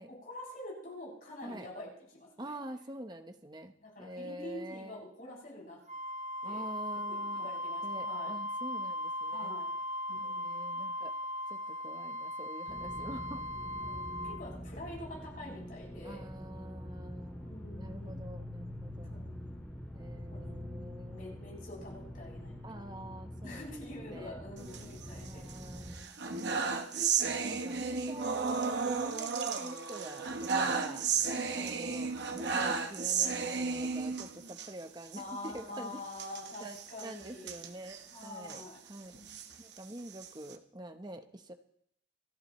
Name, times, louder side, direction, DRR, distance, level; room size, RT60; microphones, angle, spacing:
voice 1, 0.1-1.9 2.1-2.5 3.8-5.8 6.4-6.6 7.1-8.3 9.3-9.7 10.1-10.6 13.8-16.2 17.4-18.2 19.0-19.5 20.3-20.5 21.1-22.8 23.4-25.4 26.5-27.0 30.6-31.0 31.3-31.8 35.2-37.6 38.1-38.8 39.1-39.4, left 1 dB, 50° left, -4 dB, 7.5 m, -46 dB
voice 2, 1.4-1.7 2.4-3.7 4.0-5.0 6.4-7.5 7.8-9.5 10.2-11.1 11.5-13.5 16.0-19.2 19.9-21.4 22.6-24.4 25.1-26.3 27.4-31.0 31.5-36.0 36.6-36.8 37.0-39.2 39.6-41.5, right 1 dB, 25° right, 7 dB, 0.9 m, -46 dB
Wind instrument woodwind instrument, 5.9-14.4, left 1 dB, 40° right, 1.2 m, -38 dB
sound 1, 12.7-26.0, equal, 10° left, 3.9 m, -45 dB
sound 2, 24.6-25.5 25.9-34.7 35.1-35.2 35.5-35.6 36.1-38.6 39.1-40.5, right 5 dB, 65° right, 1.0 m, -34 dB
28.0 x 11.0 x 3.1 m, 0.70 s
head